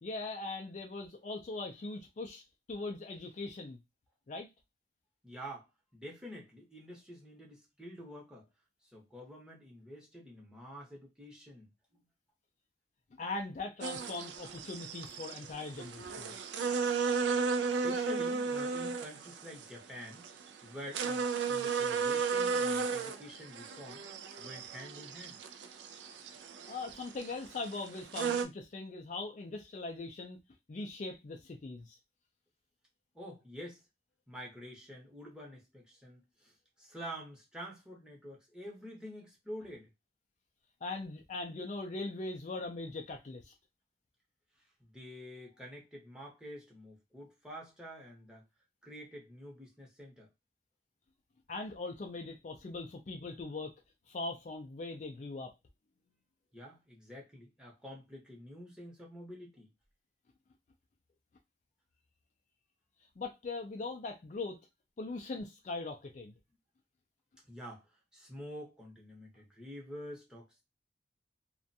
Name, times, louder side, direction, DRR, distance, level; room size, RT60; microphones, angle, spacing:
voice 1, 0.0-2.4 2.7-3.8 4.3-4.5 13.1-16.4 26.7-30.4 30.7-32.0 40.8-43.5 51.5-53.7 54.1-55.5 63.2-64.6 65.0-66.3, left 3 dB, 45° left, 0.4 m, -40 dB
voice 2, 5.2-8.5 8.8-12.0 17.6-20.3 20.6-24.0 24.4-25.4 33.1-33.8 34.3-39.9 44.8-48.4 48.8-50.3 56.5-59.7 67.4-67.8 68.1-70.6, equal, 5° right, 0.9 m, -48 dB
sound 1, 13.8-28.4, right 5 dB, 90° right, 0.4 m, -35 dB
2.4 x 2.2 x 2.6 m
head